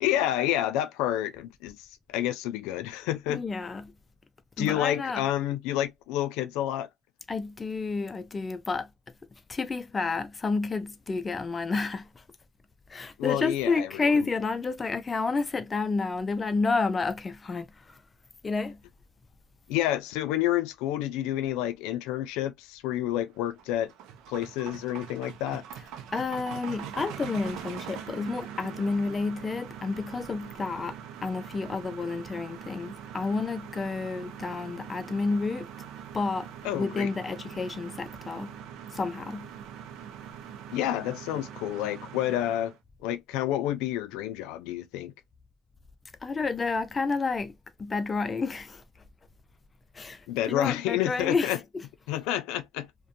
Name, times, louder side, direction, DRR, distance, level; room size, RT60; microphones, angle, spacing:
voice 1, 0.0-3.4 4.6-6.9 13.2-14.1 19.7-23.9 24.3-25.6 36.6-37.1 40.7-42.7 43.0-45.1 50.3-51.6 52.1-52.9, left 13 dB, 90° left, 0.4 m, -29 dB
voice 2, 3.3-3.9 4.6-5.2 7.3-8.9 9.5-12.1 12.9-18.0 18.4-18.8 26.1-30.9 31.2-35.7 36.1-36.5 36.7-38.5 38.9-39.5 46.2-47.5 47.8-48.8 49.9-50.2 50.5-51.5, left 4 dB, 25° left, 0.4 m, -30 dB
sound 1, 23.4-42.8, right 9 dB, 75° right, 0.5 m, -43 dB
2.5 x 2.2 x 2.5 m
cardioid pair, 105°, 0 cm